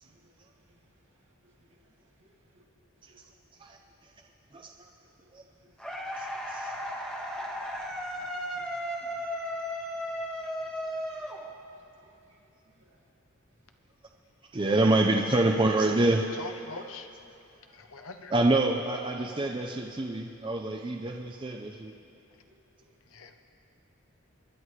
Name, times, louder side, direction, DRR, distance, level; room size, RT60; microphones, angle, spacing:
voice 1, 0.0-2.6 2.9-3.2 5.0-6.1 6.8-7.0 7.3-12.5 12.7-13.0 13.5-13.7 17.7-17.8 22.5-22.9, right 1 dB, 70° right, -2 dB, 2.3 m, -66 dB
sound 1, 5.8-11.9, equal, 5° left, 0.9 m, -35 dB
voice 2, 6.2-6.7 14.5-16.5 18.3-21.9, right 2 dB, 25° right, 2 dB, 0.5 m, -26 dB
voice 3, 16.4-17.1 17.8-18.3 23.1-23.3, left 4 dB, 75° left, 6 dB, 0.8 m, -42 dB
23.5 x 11.0 x 3.2 m, 2.8 s
head